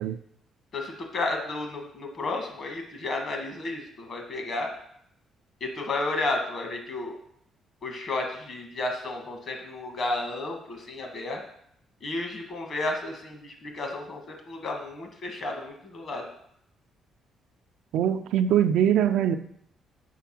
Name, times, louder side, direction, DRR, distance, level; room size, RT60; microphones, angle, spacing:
voice 1, 0.7-4.7 5.6-7.2 7.8-11.4 12.0-16.3, left 2 dB, 55° left, 3 dB, 1.4 m, -32 dB
voice 2, 17.9-19.4, right 9 dB, 85° right, 10 dB, 0.4 m, -22 dB
4.6 x 4.2 x 5.8 m, 0.71 s
cardioid pair, 90°, 0 cm